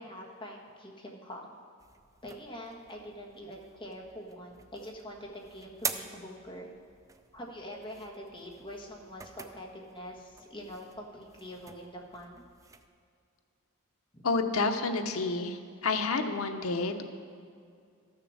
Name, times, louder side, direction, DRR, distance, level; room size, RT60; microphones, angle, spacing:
voice 1, 0.0-1.6 2.2-6.7 7.3-12.4 14.1-14.3, equal, 25° left, -1 dB, 1.5 m, -44 dB
sound 1, 1.8-12.9, right 5 dB, 15° right, 0.4 m, -45 dB
voice 2, 14.2-17.0, left 3 dB, 90° left, 6 dB, 0.9 m, -29 dB
13.5 x 6.8 x 6.3 m, 2.3 s
head